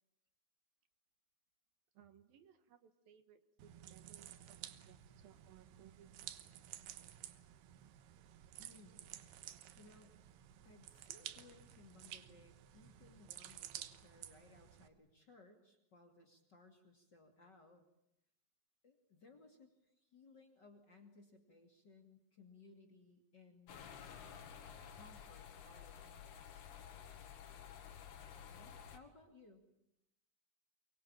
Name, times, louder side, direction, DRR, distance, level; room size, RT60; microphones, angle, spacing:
voice 1, 1.9-6.3, right 9 dB, 70° right, 10 dB, 2.9 m, -64 dB
sound 1, 3.6-14.9, right 12 dB, 85° right, 3.3 m, -53 dB
voice 2, 8.6-9.2 9.8-10.2 10.6-17.8 18.8-23.9 24.9-26.7 28.4-29.7, left 3 dB, 30° left, 4 dB, 2.6 m, -63 dB
sound 2, 23.7-29.0, left 8 dB, 80° left, 4.2 m, -53 dB
24.5 x 23.5 x 8.9 m, 0.82 s
omnidirectional pair, 4.6 m